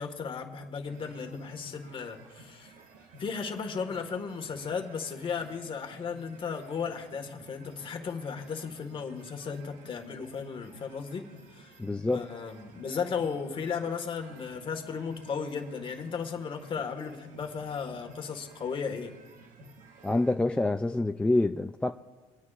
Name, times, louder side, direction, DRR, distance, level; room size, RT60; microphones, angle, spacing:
voice 1, 0.0-2.7 3.2-11.3 11.5-11.8 12.1-19.1, left 6 dB, 35° left, 1.6 m, -35 dB
sound 1, 0.8-20.4, right 2 dB, 60° right, 1.4 m, -53 dB
voice 2, 11.8-12.2 20.0-21.9, left 2 dB, 5° left, 0.3 m, -26 dB
25.5 x 9.5 x 2.5 m
cardioid pair, 115°, 15 cm